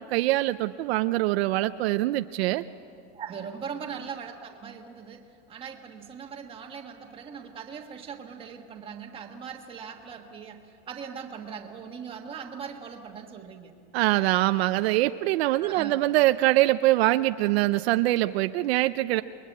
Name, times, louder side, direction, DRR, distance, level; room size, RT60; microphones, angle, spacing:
voice 1, 0.0-2.6 13.9-19.2, right 17 dB, 65° right, 10 dB, 0.6 m, -23 dB
voice 2, 3.1-13.8 14.2-14.5 15.6-16.0, right 7 dB, 15° right, 3 dB, 1.5 m, -40 dB
29.0 x 22.0 x 8.4 m, 2.4 s
supercardioid pair, 180°, 33 cm